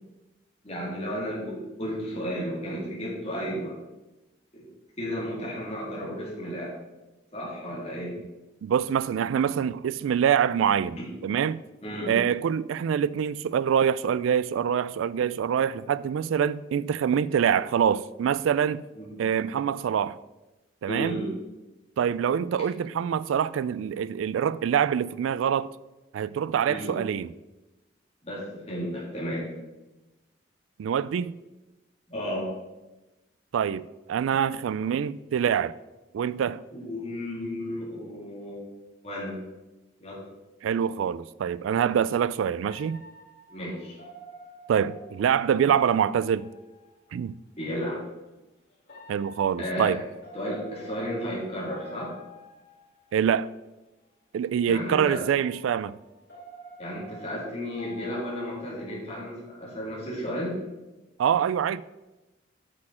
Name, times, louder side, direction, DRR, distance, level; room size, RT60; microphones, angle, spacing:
voice 1, 0.6-3.8 4.5-4.6 5.0-6.8 7.3-8.1 11.0-11.1 11.8-12.1 18.9-19.2 20.9-21.3 26.7-26.9 28.2-29.5 32.1-32.5 36.7-38.6 39.0-39.3 40.0-40.2 43.5-44.0 47.6-48.0 49.6-50.0 50.3-52.1 54.7-55.2 56.8-60.6, equal, 30° left, 3.1 m, -33 dB
voice 2, 8.6-11.6 12.1-18.8 19.2-20.2 20.8-21.2 22.0-25.7 26.1-27.3 30.8-31.4 33.5-35.7 36.1-36.6 40.6-43.0 44.7-46.5 47.1-47.3 49.1-50.0 53.1-53.5 54.3-56.0 61.2-61.8, right 8 dB, 85° right, 0.3 m, -25 dB
sound 1, 42.6-47.2 48.8-53.4 54.8-59.4, equal, 50° left, 3.3 m, -49 dB
8.6 x 6.6 x 4.3 m
head